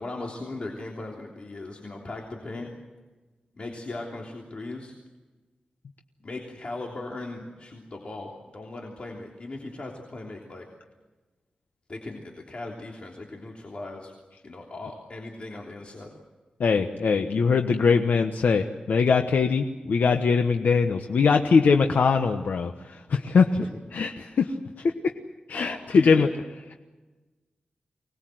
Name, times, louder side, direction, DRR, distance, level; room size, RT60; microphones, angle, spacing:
voice 1, 0.0-2.7 3.5-4.9 6.2-10.7 11.9-14.1 14.4-16.1 23.5-23.7 25.5-26.3, left 2 dB, 45° left, -1 dB, 3.2 m, -38 dB
voice 2, 16.6-23.5 23.9-24.5 25.5-26.3, left 5 dB, 80° left, 5 dB, 1.1 m, -22 dB
25.0 x 20.0 x 7.8 m, 1.2 s
wide cardioid pair, 125°, 3 cm